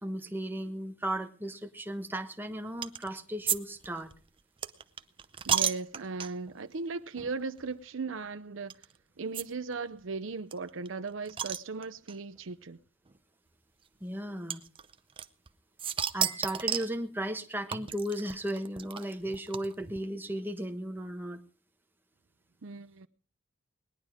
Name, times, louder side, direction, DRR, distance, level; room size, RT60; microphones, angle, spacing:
voice 1, 0.0-4.1 14.0-14.6 16.1-21.4, right 1 dB, 10° right, 1.3 m, -35 dB
sound 1, 2.8-3.1 3.5-6.5 7.2-7.3 7.6-7.7 8.7-8.8 9.3-9.4 9.7-9.8 10.0-10.1 10.5-12.2 13.1-13.2 14.5-15.5 15.8-17.0 17.7-20.0, right 8 dB, 25° right, 0.6 m, -33 dB
voice 2, 5.4-8.7 9.2-12.8 22.6-23.1, right 4 dB, 75° right, 0.6 m, -37 dB
20.0 x 10.5 x 4.9 m
head